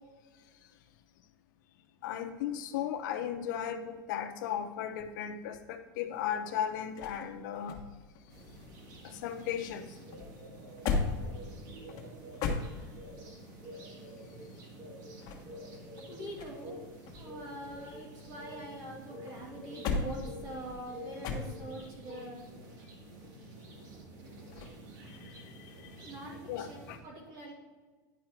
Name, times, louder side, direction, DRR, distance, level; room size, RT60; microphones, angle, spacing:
voice 1, 2.0-7.8 9.0-9.9 25.1-26.1 26.5-27.0, left 9 dB, 75° left, 7 dB, 0.7 m, -36 dB
sound 1, 6.2-9.3 9.6-13.2 15.0-16.8 17.1-18.8 19.3-21.9 24.5-24.8, left 4 dB, 40° left, 1.2 m, -38 dB
sound 2, 8.3-27.0, right 1 dB, 70° right, 1.9 m, -49 dB
voice 2, 16.1-16.8 17.1-22.4 26.0-27.5, right 1 dB, 45° right, -1 dB, 2.5 m, -44 dB
10.0 x 4.9 x 4.5 m, 1.4 s
supercardioid pair, 150°, 10 cm